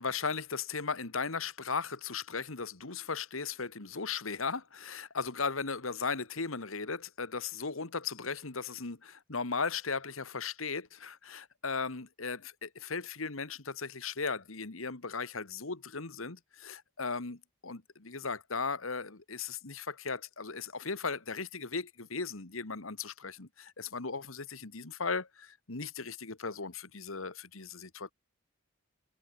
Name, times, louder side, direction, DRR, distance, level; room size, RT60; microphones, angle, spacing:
voice 1, 0.0-28.1, left 5 dB, 90° left, 1.9 m, -37 dB
head